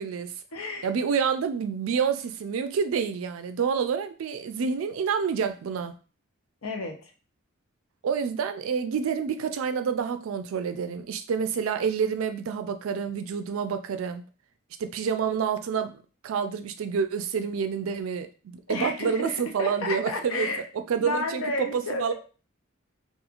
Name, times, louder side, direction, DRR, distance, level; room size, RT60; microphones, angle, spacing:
voice 1, 0.0-0.3 0.8-5.9 8.0-14.2 14.8-20.5 20.9-22.1, right 6 dB, 75° right, 8 dB, 0.3 m, -28 dB
voice 2, 0.5-0.9 6.6-7.1 18.7-20.6 21.0-22.1, left 2 dB, 80° left, 2 dB, 0.7 m, -31 dB
2.9 x 2.4 x 2.4 m, 0.36 s
head